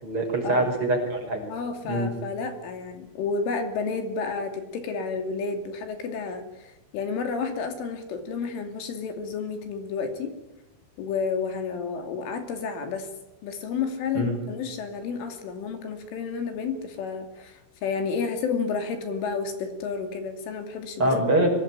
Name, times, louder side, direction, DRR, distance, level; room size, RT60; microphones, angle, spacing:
voice 1, 0.0-1.4 1.9-2.1 14.1-14.4 21.0-21.5, right 1 dB, 25° right, 3 dB, 6.0 m, -24 dB
voice 2, 1.5-10.4 11.0-13.1 13.4-21.1, left 5 dB, 70° left, 7 dB, 5.0 m, -31 dB
24.5 x 20.5 x 9.9 m, 0.99 s
omnidirectional pair, 6.0 m